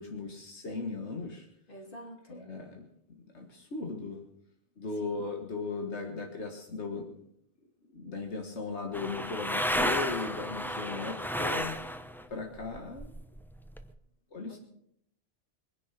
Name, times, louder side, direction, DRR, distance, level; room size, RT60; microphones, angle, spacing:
voice 1, 0.0-1.5 2.3-2.8 3.3-4.2 4.8-7.1 7.9-11.8 12.3-13.1 14.3-14.6, left 4 dB, 85° left, 2 dB, 2.0 m, -37 dB
voice 2, 1.7-2.4 5.0-5.2 14.4-14.6, equal, 50° left, 2 dB, 3.2 m, -47 dB
sound 1, 8.9-12.2 12.6-13.8, equal, ahead, 0.8 m, -32 dB
22.0 x 10.5 x 5.9 m, 0.73 s
omnidirectional pair, 1.1 m